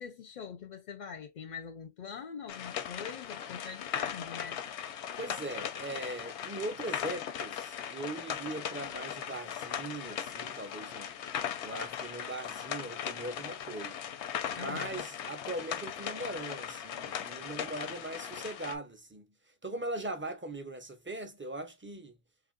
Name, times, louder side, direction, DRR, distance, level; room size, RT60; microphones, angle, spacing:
voice 1, 0.0-4.6 14.5-15.0, left 6 dB, 55° left, 0.5 m, -43 dB
sound 1, 2.5-18.7, left 9 dB, 90° left, 0.9 m, -38 dB
voice 2, 5.2-11.1 11.6-14.0 14.5-19.3 19.6-22.2, right 2 dB, 20° right, 0.3 m, -40 dB
2.9 x 2.5 x 3.7 m
omnidirectional pair, 1.1 m